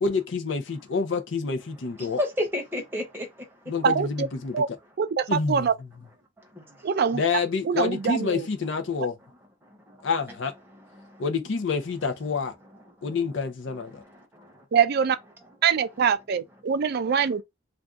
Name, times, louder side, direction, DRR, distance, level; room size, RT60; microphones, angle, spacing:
voice 1, 0.0-2.2 3.7-4.5 5.3-5.7 7.1-9.2 10.0-10.5 11.2-12.5 13.0-14.0, left 4 dB, 65° left, 0.6 m, -27 dB
voice 2, 2.0-3.7 6.4-6.9 9.6-10.1 10.7-11.2 13.0-13.1 13.9-14.6, left 1 dB, 10° right, 0.8 m, -34 dB
voice 3, 3.8-4.3 4.5-4.7 5.0-5.7 6.8-7.2 7.6-8.5 14.7-15.2 15.6-17.4, right 7 dB, 55° right, 0.4 m, -24 dB
2.5 x 2.3 x 3.5 m
head